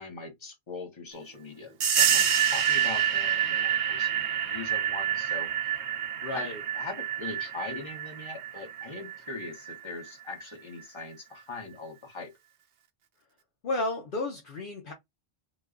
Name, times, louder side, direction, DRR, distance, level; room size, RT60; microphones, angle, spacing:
voice 1, 0.0-5.8 6.3-6.5 6.7-12.3, left 3 dB, 25° left, 1.1 m, -41 dB
sound 1, 1.8-10.1, right 9 dB, 85° right, 1.0 m, -28 dB
voice 2, 6.2-6.6 13.6-14.9, left 2 dB, 55° left, 0.8 m, -32 dB
3.1 x 2.2 x 3.6 m
omnidirectional pair, 1.1 m